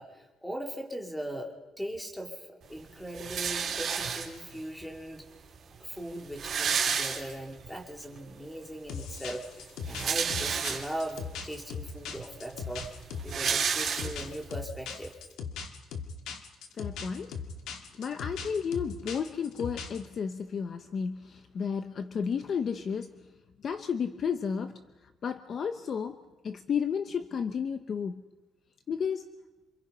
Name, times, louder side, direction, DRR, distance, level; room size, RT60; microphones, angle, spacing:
voice 1, 0.0-5.4 5.8-15.1, right 1 dB, 5° left, 2 dB, 2.8 m, -39 dB
sound 1, 3.1-4.6 5.4-5.5 5.7-5.8 6.1-7.7 8.1-8.2 9.6-11.2 11.8-11.9 12.2-14.5, right 6 dB, 40° right, 3.6 m, -31 dB
sound 2, 8.9-20.1, left 6 dB, 90° left, 2.1 m, -39 dB
voice 2, 16.7-17.4 18.0-23.1 23.6-24.8 25.2-26.2 26.4-28.2 28.9-29.3, left 6 dB, 35° left, 9 dB, 0.8 m, -32 dB
27.5 x 26.5 x 5.6 m, 1.1 s
cardioid pair, 180°, 0 cm